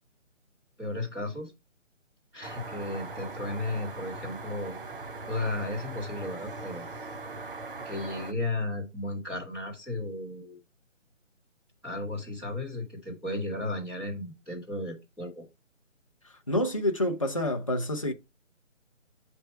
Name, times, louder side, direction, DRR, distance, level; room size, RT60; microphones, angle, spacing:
voice 1, 0.8-1.5 2.3-4.7 5.3-6.9 7.8-10.6 11.8-15.4, left 2 dB, 5° right, 1.3 m, -34 dB
sound 1, 2.4-8.3, right 3 dB, 45° right, 0.7 m, -40 dB
voice 2, 16.5-18.1, left 1 dB, 25° left, 0.5 m, -27 dB
7.6 x 3.4 x 4.5 m
figure-of-eight pair, 155°, 38 cm